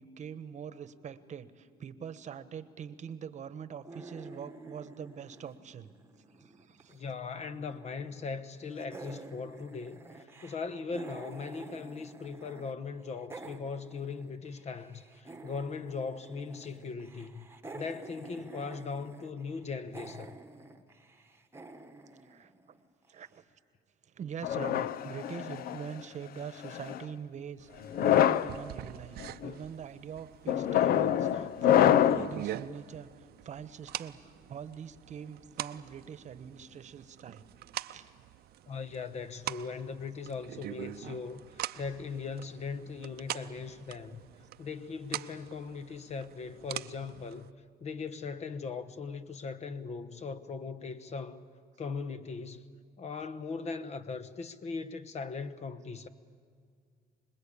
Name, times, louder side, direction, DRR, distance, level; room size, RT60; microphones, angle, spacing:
voice 1, 0.0-5.9 6.3-7.1 18.3-18.4 22.2-22.8 23.1-23.4 24.0-27.7 28.0-37.4 37.9-38.1 47.1-47.2, right 7 dB, 45° right, 1.1 m, -44 dB
sound 1, 3.8-6.9 7.2-8.5 8.8-12.7 13.0-23.1, right 2 dB, 15° right, 1.3 m, -49 dB
voice 2, 6.9-17.5 17.7-20.4 38.7-41.5 41.8-44.2 44.6-47.5 47.8-51.4 51.8-52.6 53.0-56.1, left 5 dB, 40° left, 1.1 m, -39 dB
sound 2, 24.4-25.9 26.6-27.0 27.8-28.5 29.2-29.5 30.5-32.3, left 11 dB, 60° left, 0.6 m, -25 dB
sound 3, 27.6-47.5, right 13 dB, 70° right, 0.7 m, -44 dB
26.0 x 21.0 x 8.6 m
cardioid pair, 110°, 17 cm